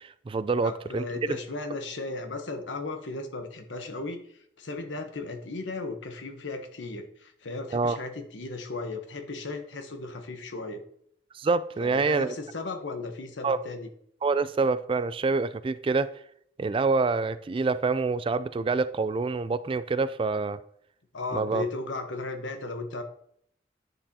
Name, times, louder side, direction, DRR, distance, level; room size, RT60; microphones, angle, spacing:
voice 1, 0.0-1.4 7.7-8.0 11.3-12.3 13.4-13.6 14.2-16.1 16.6-20.6 21.3-21.7, right 4 dB, 30° right, 0.3 m, -26 dB
voice 2, 0.6-10.8 11.8-13.9 21.1-23.0, left 3 dB, 85° left, 1.1 m, -36 dB
10.0 x 6.7 x 2.8 m
head